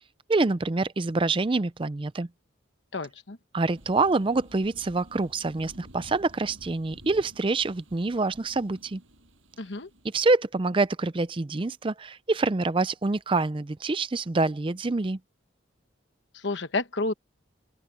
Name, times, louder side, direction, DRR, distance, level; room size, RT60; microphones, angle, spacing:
voice 1, 0.3-2.3 3.5-9.0 10.1-15.2, right 3 dB, 25° right, 0.5 m, -26 dB
voice 2, 2.9-3.4 9.6-9.9 16.3-17.1, left 3 dB, 65° left, 1.2 m, -30 dB
sound 1, 3.7-10.3, right 1 dB, 85° right, 7.5 m, -52 dB
open air
head